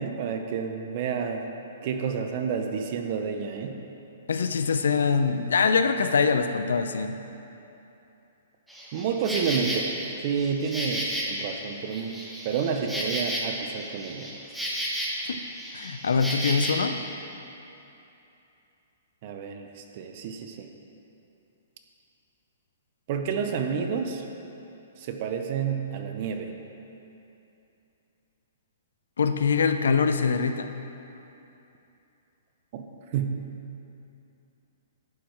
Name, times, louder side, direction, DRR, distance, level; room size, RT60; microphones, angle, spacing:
voice 1, 0.0-1.4 1.8-3.8 8.9-10.0 10.2-12.2 12.4-14.3 19.2-20.7 23.1-24.2 25.0-26.5 32.7-32.8 33.1-33.4, right 6 dB, 40° right, 5 dB, 0.5 m, -29 dB
voice 2, 4.3-7.2 15.3-15.4 15.7-17.0 29.2-30.7, left 5 dB, 90° left, 9 dB, 0.4 m, -23 dB
Insect, 8.7-16.7, equal, ahead, 0.9 m, -33 dB
11.0 x 4.7 x 4.6 m, 2.9 s
hypercardioid pair, 155°, 0 cm